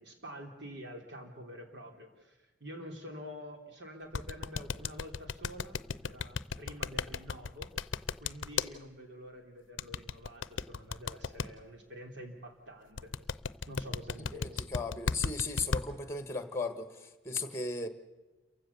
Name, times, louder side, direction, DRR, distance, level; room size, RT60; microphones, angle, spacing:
voice 1, 0.0-7.9 8.2-13.1 13.7-14.7, equal, 65° right, 3.3 m, -47 dB
sound 1, 4.1-8.7 9.8-11.5 13.0-15.8, left 5 dB, 90° left, 0.6 m, -33 dB
voice 2, 14.3-17.9, left 3 dB, 15° left, 1.4 m, -36 dB
28.5 x 15.5 x 7.0 m
head